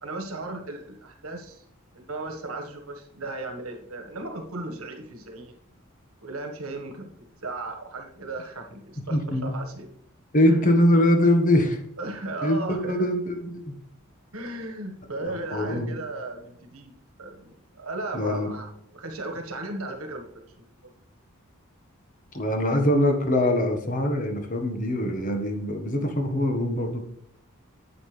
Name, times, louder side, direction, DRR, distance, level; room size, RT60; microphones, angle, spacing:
voice 1, 0.0-1.6 1.9-5.5 6.2-9.9 10.4-10.6 12.0-13.1 14.3-16.9 17.2-20.7, right 2 dB, 75° right, 5 dB, 1.6 m, -36 dB
voice 2, 9.1-9.5 10.3-11.8 12.4-13.7 15.2-16.0 18.1-18.5 22.3-27.0, left 1 dB, 40° left, 4 dB, 1.4 m, -23 dB
9.6 x 7.8 x 3.4 m, 0.74 s
head